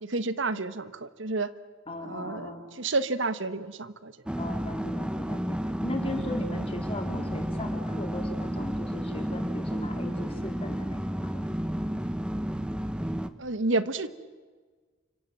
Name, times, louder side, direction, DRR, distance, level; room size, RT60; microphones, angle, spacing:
voice 1, 0.0-1.5 2.0-4.1 6.1-6.3 13.4-14.1, right 3 dB, 70° right, 14 dB, 1.4 m, -30 dB
voice 2, 1.9-2.6 4.4-11.4, left 1 dB, 30° left, 4 dB, 4.0 m, -38 dB
sound 1, 4.3-13.3, equal, 5° right, 1.2 m, -31 dB
29.5 x 26.0 x 7.6 m, 1.4 s
head